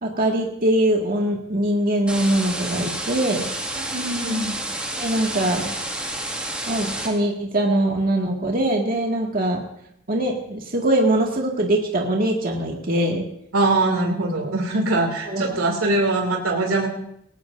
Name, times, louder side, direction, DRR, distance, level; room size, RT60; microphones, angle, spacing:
voice 1, 0.0-3.5 5.0-5.7 6.7-9.6 10.1-13.3 15.3-15.6, right 1 dB, 40° right, 0 dB, 1.9 m, -22 dB
sound 1, 2.1-7.1, right 1 dB, 5° right, 2.0 m, -29 dB
voice 2, 3.8-4.6 13.5-16.9, right 2 dB, 90° right, 1 dB, 2.6 m, -22 dB
19.5 x 18.0 x 2.6 m, 0.74 s
head